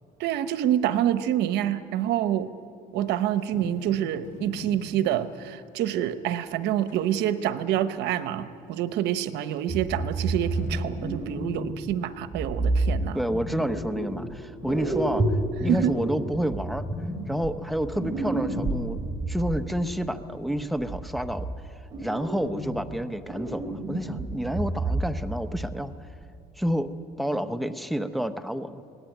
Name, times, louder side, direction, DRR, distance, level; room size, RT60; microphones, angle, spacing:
voice 1, 0.2-2.5 2.9-13.2 15.7-15.9, right 11 dB, 85° right, 12 dB, 1.0 m, -27 dB
sound 1, 3.0-5.5 6.1-6.2 6.4-8.5 9.1-9.2 9.6-9.7 10.0-11.2, left 2 dB, 55° left, 5.2 m, -42 dB
sound 2, 9.7-11.9 12.3-14.3 14.6-19.6 20.6-21.6 21.9-23.0 23.3-25.3 25.5-25.7 26.2-26.3, right 2 dB, 25° right, 3.4 m, -30 dB
voice 2, 13.1-15.2 15.6-16.8 17.3-19.0 19.3-21.5 22.0-25.9 26.6-26.9 27.2-28.8, equal, ahead, 8 dB, 1.0 m, -29 dB
22.5 x 18.0 x 9.3 m, 2.4 s
cardioid pair, 110°, 17 cm